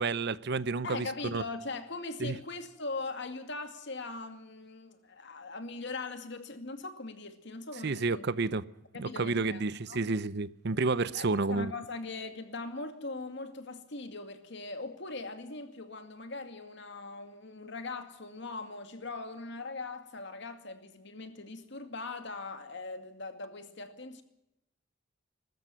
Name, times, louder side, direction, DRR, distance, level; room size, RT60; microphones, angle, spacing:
voice 1, 0.0-1.4 2.2-2.4 7.8-8.6 9.0-11.7, right 3 dB, 55° right, 0.7 m, -30 dB
voice 2, 0.8-8.3 8.9-10.0 11.1-24.2, left 3 dB, 60° left, 2.4 m, -40 dB
22.0 x 13.5 x 9.1 m
head